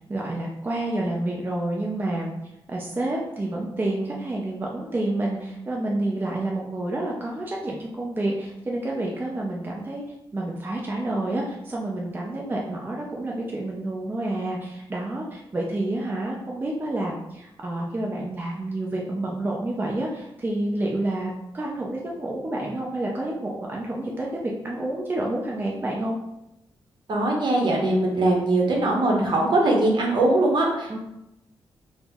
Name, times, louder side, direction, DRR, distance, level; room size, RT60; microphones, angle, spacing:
voice 1, 0.1-2.3 2.7-10.0 10.3-26.2 30.9-31.0, right 1 dB, 20° right, -2 dB, 0.4 m, -29 dB
voice 2, 27.1-31.0, right 2 dB, 55° right, -1 dB, 0.8 m, -21 dB
2.7 x 2.0 x 3.4 m, 0.86 s
cardioid pair, 105°, 9 cm